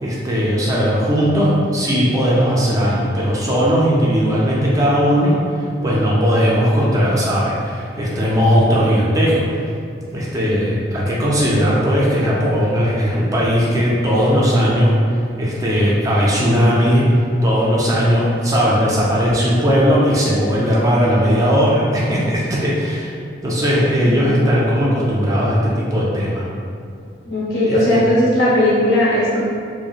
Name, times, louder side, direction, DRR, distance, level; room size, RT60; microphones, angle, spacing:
voice 1, 0.0-5.4 5.8-9.6 10.1-14.9 15.4-17.0 17.4-23.1 23.4-26.4 27.7-28.0, equal, 20° right, -5 dB, 0.3 m, -17 dB
voice 2, 27.3-29.4, left 1 dB, 85° left, -9 dB, 0.9 m, -17 dB
2.7 x 2.1 x 2.4 m, 2.3 s
head